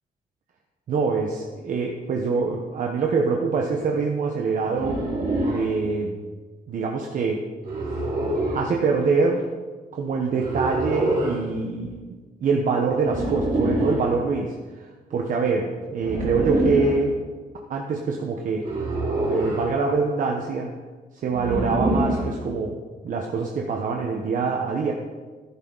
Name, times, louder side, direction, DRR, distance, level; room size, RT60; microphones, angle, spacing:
voice 1, 0.9-5.0 5.5-6.2 6.7-7.4 7.9-8.0 8.5-9.4 9.9-17.2 17.7-18.6 19.3-20.7 21.2-22.8 23.0-24.9, right 4 dB, 60° right, 1 dB, 1.1 m, -25 dB
sound 1, 4.7-5.7 7.6-8.6 10.4-11.4 13.0-14.0 16.0-17.0 18.6-19.7 21.3-22.3, right 1 dB, 80° right, 4.3 m, -25 dB
13.0 x 11.0 x 4.1 m, 1.4 s
cardioid pair, 130°, 15 cm